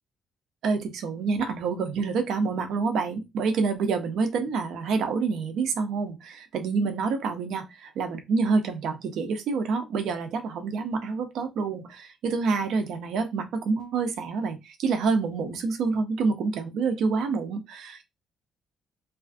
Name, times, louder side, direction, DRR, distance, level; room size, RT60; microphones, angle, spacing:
voice 1, 0.6-18.1, right 4 dB, 80° right, 0.5 m, -27 dB
2.4 x 2.4 x 2.4 m
cardioid pair, 130°, 0 cm